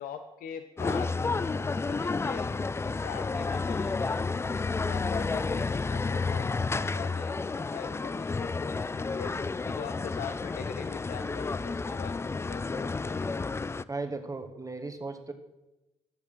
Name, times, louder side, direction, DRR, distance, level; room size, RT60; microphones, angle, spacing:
voice 1, 0.0-2.5 2.8-4.2 4.8-6.5 6.7-9.3 9.7-13.3, left 8 dB, 65° left, 8 dB, 0.7 m, -43 dB
sound 1, 0.8-13.8, left 4 dB, 15° left, 0.3 m, -31 dB
voice 2, 13.9-15.3, right 3 dB, 20° right, 7 dB, 1.6 m, -36 dB
10.5 x 7.0 x 6.2 m, 0.99 s
hypercardioid pair, 45°, 16 cm